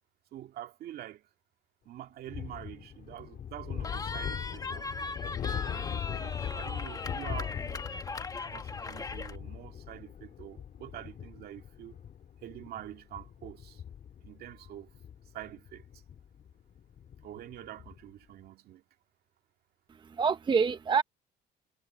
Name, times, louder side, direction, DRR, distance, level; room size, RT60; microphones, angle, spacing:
voice 1, 0.3-1.3 1.8-4.9 5.4-7.9 8.5-12.0 12.4-13.8 14.2-14.9 15.3-15.9 17.2-18.8, right 12 dB, 70° right, 2.0 m, -46 dB
sound 1, 2.3-18.1, left 9 dB, 50° left, 3.3 m, -41 dB
Cheering, 3.8-9.4, left 3 dB, 20° left, 1.3 m, -39 dB
voice 2, 19.9-21.0, right 5 dB, 25° right, 0.7 m, -27 dB
cardioid pair, 110°, 17 cm